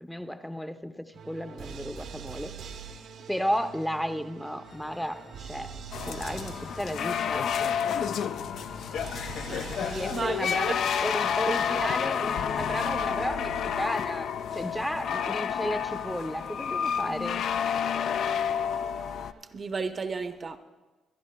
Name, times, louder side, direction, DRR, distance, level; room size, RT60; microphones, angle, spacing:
voice 1, 0.0-2.5 2.9-3.0 3.3-5.7 6.1-7.5 9.8-17.5, equal, 5° left, 0.6 m, -33 dB
sound 1, 1.1-19.6, right 6 dB, 75° right, 0.8 m, -46 dB
sound 2, 4.6-9.9, left 3 dB, 40° left, 1.4 m, -50 dB
sound 3, 5.9-19.3, left 8 dB, 70° left, 0.3 m, -30 dB
voice 2, 9.5-10.7 11.8-11.9 19.5-20.6, right 4 dB, 40° right, 0.6 m, -34 dB
24.5 x 11.0 x 2.2 m
cardioid pair, 90°, 0 cm